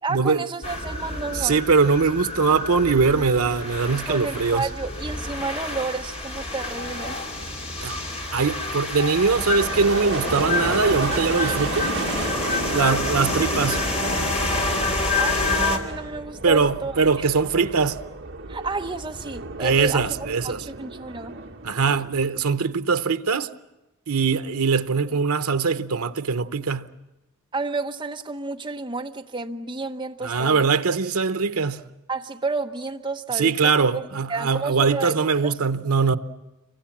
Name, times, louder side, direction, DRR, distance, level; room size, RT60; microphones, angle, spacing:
voice 1, 0.0-1.6 4.1-7.2 12.8-13.0 15.2-17.3 18.5-20.1 20.4-21.3 27.5-30.6 32.1-34.0 34.3-35.2 35.4-35.6, right 3 dB, 20° right, 1.0 m, -31 dB
sound 1, 0.6-15.8, left 2 dB, 30° left, 2.7 m, -28 dB
voice 2, 1.3-4.7 7.8-8.0 8.3-11.9 12.7-13.9 16.4-18.0 19.6-20.6 21.6-23.5 24.1-26.9 30.2-31.9 33.3-36.2, right 5 dB, 85° right, 0.9 m, -22 dB
sound 2, 6.7-22.7, right 3 dB, 55° right, 1.6 m, -34 dB
27.5 x 23.5 x 7.3 m
head